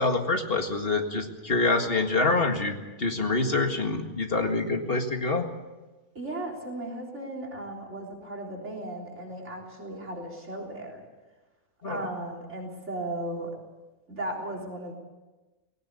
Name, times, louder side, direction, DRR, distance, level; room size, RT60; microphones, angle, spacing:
voice 1, 0.0-5.5 11.8-12.0, left 3 dB, 40° left, 4 dB, 2.1 m, -26 dB
voice 2, 6.2-11.0 11.9-13.6 14.1-14.9, right 1 dB, 50° right, 2 dB, 4.0 m, -36 dB
19.0 x 17.5 x 8.4 m, 1.2 s
omnidirectional pair, 1.5 m